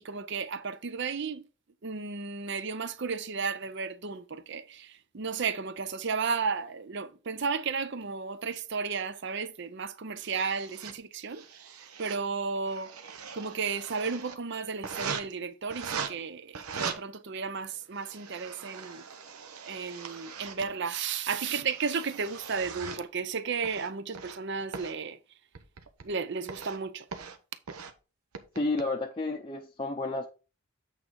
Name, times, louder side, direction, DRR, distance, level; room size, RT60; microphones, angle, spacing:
voice 1, 0.0-1.4 1.8-11.4 11.8-12.9 13.3-19.0 19.7-25.2 26.0-27.1, right 5 dB, 50° right, 0.6 m, -33 dB
sound 1, 10.2-10.9 11.3-12.2 12.6-14.4 14.8-15.2 15.7-16.1 16.5-17.0 17.7-20.7 21.3-23.0 23.6-24.4 24.7-24.9 25.5-26.1 26.5-26.8 27.1-27.4 27.7-27.9 28.3-28.8, right 6 dB, 85° right, 0.9 m, -40 dB
voice 2, 28.5-30.3, left 2 dB, 20° left, 0.6 m, -31 dB
8.5 x 3.7 x 4.6 m
head